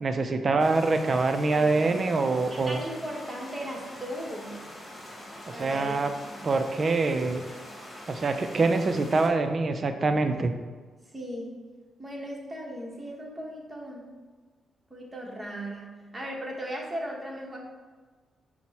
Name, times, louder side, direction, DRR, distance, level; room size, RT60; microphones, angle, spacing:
voice 1, 0.0-2.8 5.6-6.1 6.4-7.4 8.1-10.5, right 3 dB, 45° right, 8 dB, 0.4 m, -25 dB
sound 1, 0.6-9.3, left 1 dB, 25° left, 1.4 m, -44 dB
voice 2, 1.5-2.0 2.5-4.6 5.5-6.0 6.2-6.4 11.1-11.5 12.0-14.1 14.9-17.6, equal, 25° right, -1 dB, 1.1 m, -37 dB
6.0 x 2.1 x 4.1 m, 1.5 s
cardioid pair, 75°, 0 cm